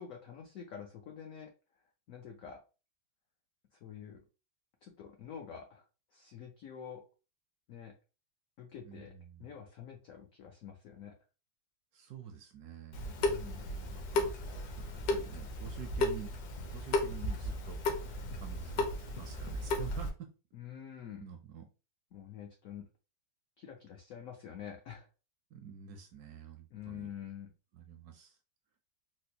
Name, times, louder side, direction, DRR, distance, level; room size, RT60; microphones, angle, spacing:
voice 1, 0.0-1.5 2.1-2.6 3.8-4.2 4.8-5.8 6.1-7.0 7.7-7.9 8.6-9.1 9.4-11.1 13.3-13.7 20.5-21.2 22.1-22.9 23.6-25.1 26.7-27.5, left 8 dB, 85° left, 3 dB, 0.7 m, -47 dB
voice 2, 8.9-9.5 11.9-14.5 14.9-16.3 16.6-20.3 21.2-21.7 25.5-27.1 27.7-28.4, right 8 dB, 70° right, 5 dB, 0.9 m, -48 dB
Water tap faucet / Sink (filling or washing) / Drip, 12.9-20.1, left 2 dB, 65° left, 1.2 m, -35 dB
4.2 x 2.2 x 2.7 m, 0.32 s
omnidirectional pair, 2.0 m